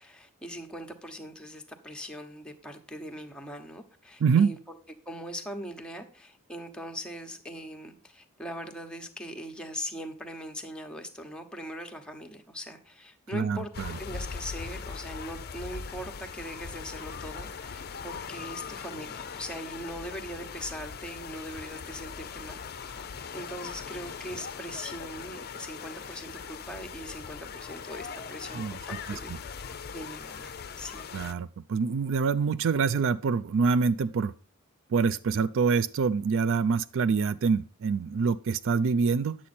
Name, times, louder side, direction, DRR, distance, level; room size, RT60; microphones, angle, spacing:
voice 1, 0.0-4.8 5.1-13.7 14.0-29.6 29.9-31.2, equal, 5° left, 1.1 m, -41 dB
voice 2, 4.2-4.5 13.3-13.9 28.5-28.8 29.3-29.4 31.1-34.3 34.9-39.4, right 5 dB, 60° right, 0.4 m, -26 dB
sound 1, 13.7-31.3, left 6 dB, 45° left, 0.6 m, -40 dB
10.0 x 7.5 x 4.3 m
head